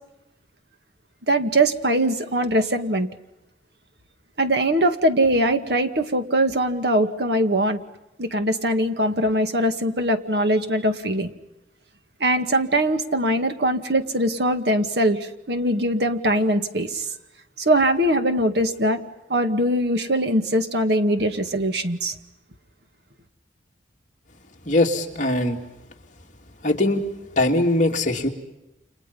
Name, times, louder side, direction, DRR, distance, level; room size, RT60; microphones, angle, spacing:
voice 1, 1.3-3.1 4.4-7.8 8.2-11.3 12.2-17.1 17.6-19.0 19.3-22.2, right 1 dB, 60° right, 7 dB, 2.1 m, -21 dB
voice 2, 24.7-25.6 26.6-27.0 27.4-28.3, left 1 dB, 40° left, 1 dB, 2.9 m, -21 dB
29.5 x 29.0 x 5.6 m, 0.95 s
head